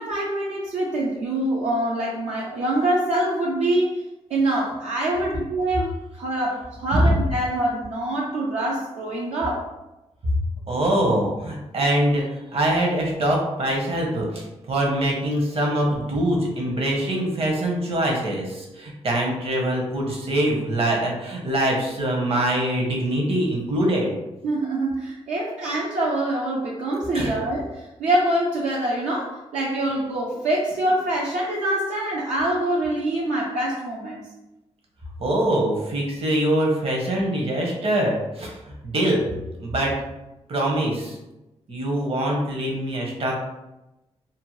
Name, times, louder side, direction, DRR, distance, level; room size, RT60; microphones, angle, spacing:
voice 1, 0.0-4.0 4.3-9.7 24.4-34.2, right 1 dB, 80° right, -4 dB, 0.5 m, -25 dB
voice 2, 10.7-12.2 12.5-24.1 27.1-27.4 35.2-38.5 38.8-39.2 39.6-39.9 40.5-41.2 41.7-43.4, right 1 dB, 55° right, -1 dB, 0.9 m, -23 dB
2.7 x 2.1 x 3.0 m, 0.98 s
supercardioid pair, 55°, 12 cm